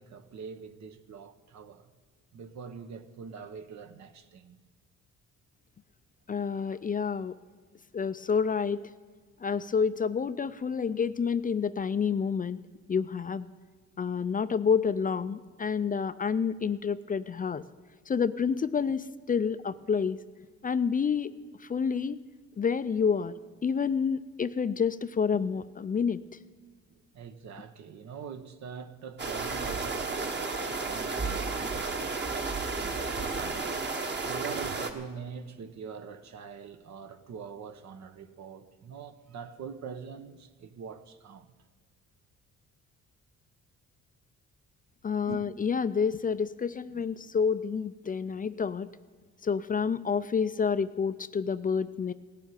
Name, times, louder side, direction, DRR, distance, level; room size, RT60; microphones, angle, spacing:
voice 1, 0.0-1.9 2.3-4.6 26.9-30.3 30.7-33.7 34.2-41.5 45.2-45.4 46.9-47.1, right 6 dB, 65° right, 1.1 m, -44 dB
voice 2, 6.3-7.3 7.9-8.8 9.4-12.6 12.9-13.5 14.0-17.6 18.1-20.2 20.6-21.3 21.6-22.2 22.6-23.4 23.6-26.2 45.0-48.9 49.4-52.1, left 6 dB, 30° left, 0.4 m, -28 dB
sound 1, 29.2-34.9, right 3 dB, 35° right, 1.4 m, -32 dB
17.0 x 7.3 x 9.1 m
cardioid pair, 90°, 30 cm